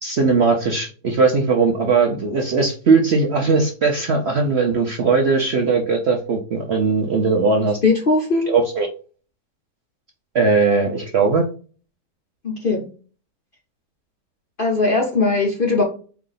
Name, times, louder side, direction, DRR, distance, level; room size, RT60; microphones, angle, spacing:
voice 1, 0.0-7.8 8.5-8.9 10.3-11.5, right 4 dB, 60° right, 1 dB, 0.7 m, -19 dB
voice 2, 7.8-8.5 12.4-12.9 14.6-15.8, left 3 dB, 50° left, 0 dB, 0.7 m, -19 dB
4.6 x 2.5 x 3.8 m, 0.39 s
omnidirectional pair, 1.8 m